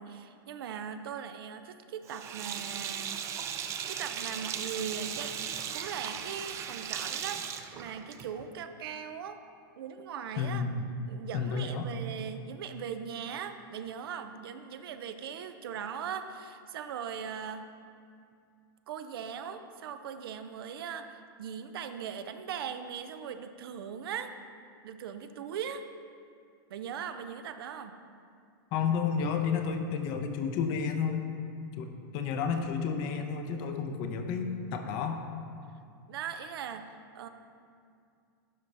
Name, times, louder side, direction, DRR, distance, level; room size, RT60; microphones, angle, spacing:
voice 1, 0.0-5.3 5.7-9.4 9.8-10.6 11.1-17.7 18.9-24.3 24.8-25.8 26.7-27.9 36.1-37.3, right 7 dB, 75° right, 9 dB, 0.5 m, -39 dB
Sink (filling or washing), 2.1-8.5, right 8 dB, 25° right, 0.3 m, -37 dB
voice 2, 10.4-10.8 11.3-11.9 28.7-31.3 31.8-35.2, left 6 dB, 40° left, 6 dB, 0.6 m, -31 dB
11.0 x 4.0 x 3.3 m, 2.4 s
supercardioid pair, 145°, 12 cm